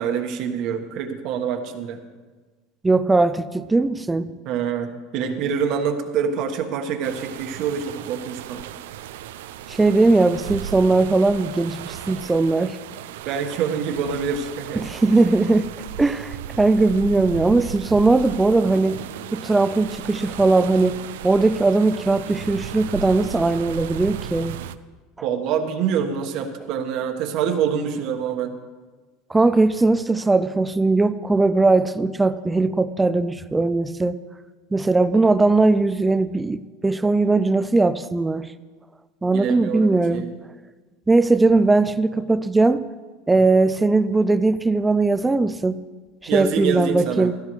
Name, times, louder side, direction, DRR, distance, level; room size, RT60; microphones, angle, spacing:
voice 1, 0.0-2.0 4.4-8.8 13.2-14.8 25.2-28.5 39.3-40.3 46.3-47.3, right 7 dB, 55° right, 6 dB, 1.4 m, -26 dB
voice 2, 2.8-4.3 9.7-12.8 14.8-15.7 16.0-19.0 19.3-21.0 21.2-24.6 29.3-34.2 34.7-38.5 39.2-40.3 41.1-42.8 43.3-45.8 46.2-47.3, right 3 dB, 10° right, 14 dB, 0.4 m, -19 dB
sound 1, 7.0-24.7, right 11 dB, 85° right, 0.5 m, -36 dB
15.5 x 13.0 x 3.2 m, 1.3 s
supercardioid pair, 125°, 0 cm